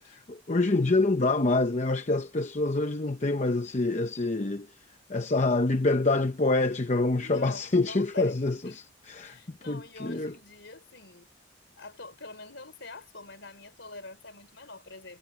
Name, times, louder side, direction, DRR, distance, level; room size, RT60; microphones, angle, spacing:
voice 1, 0.0-4.7 5.1-10.4, left 2 dB, 35° left, 0.8 m, -26 dB
voice 2, 7.2-8.8 9.2-11.3 11.8-15.2, left 2 dB, 60° left, 4.3 m, -45 dB
head